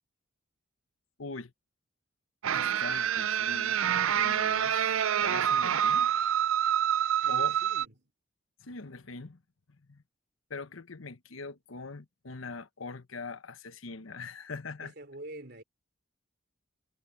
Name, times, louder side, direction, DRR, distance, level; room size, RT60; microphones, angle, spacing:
voice 1, 1.2-1.5 2.5-3.8 4.1-6.1 7.3-7.6 8.6-9.4 9.7-10.0 10.5-14.9, left 4 dB, 80° left, 1.1 m, -42 dB
sound 1, 2.4-7.9, right 9 dB, 90° right, 0.5 m, -27 dB
voice 2, 7.2-8.1 14.8-15.6, right 1 dB, 55° right, 3.5 m, -46 dB
head